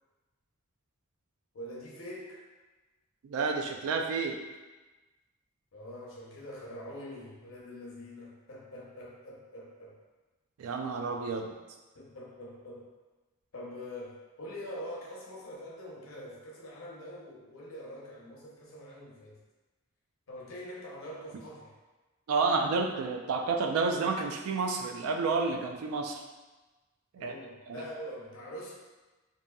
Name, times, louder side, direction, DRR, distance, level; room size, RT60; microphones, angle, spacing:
voice 1, 1.5-2.4 5.7-10.0 11.9-12.9 13.5-19.4 20.3-21.7 27.2-28.7, equal, 65° left, -3 dB, 0.6 m, -44 dB
voice 2, 3.2-4.4 10.6-11.5 22.3-26.2 27.1-27.3 27.7-27.9, right 4 dB, 75° right, 3 dB, 0.3 m, -30 dB
2.7 x 2.5 x 2.2 m, 1.2 s
head